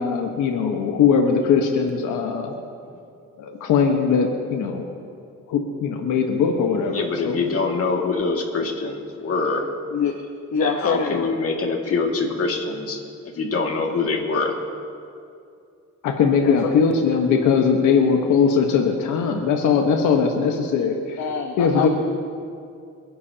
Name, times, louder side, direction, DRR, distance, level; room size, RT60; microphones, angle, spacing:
voice 1, 0.0-2.5 3.4-4.9 5.5-7.4 16.0-21.2 21.6-21.9, left 6 dB, 90° left, 3 dB, 1.3 m, -20 dB
voice 2, 6.9-9.7 10.6-13.0 13.2-14.6, left 4 dB, 50° left, 1 dB, 2.3 m, -24 dB
voice 3, 10.5-11.3 16.4-16.7 17.8-18.1 21.2-21.9, left 6 dB, 65° left, 3 dB, 1.2 m, -25 dB
29.0 x 11.0 x 2.9 m, 2.4 s
cardioid pair, 90°, 30 cm